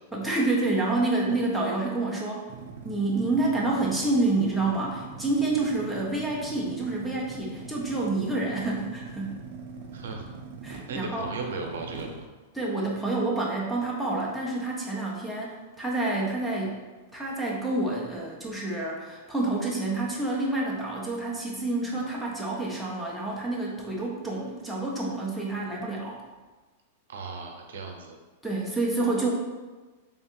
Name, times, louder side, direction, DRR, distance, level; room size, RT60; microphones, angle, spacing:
voice 1, 0.1-2.4 2.8-9.3 10.6-11.3 12.5-16.8 17.1-26.2 28.4-29.3, right 2 dB, ahead, -4 dB, 0.5 m, -28 dB
sound 1, 2.5-12.3, right 4 dB, 45° right, 0.5 m, -42 dB
voice 2, 9.9-10.3 10.9-12.2 27.1-28.2, right 3 dB, 90° right, 3 dB, 0.7 m, -36 dB
3.5 x 2.4 x 4.2 m, 1.3 s
supercardioid pair, 175°, 0 cm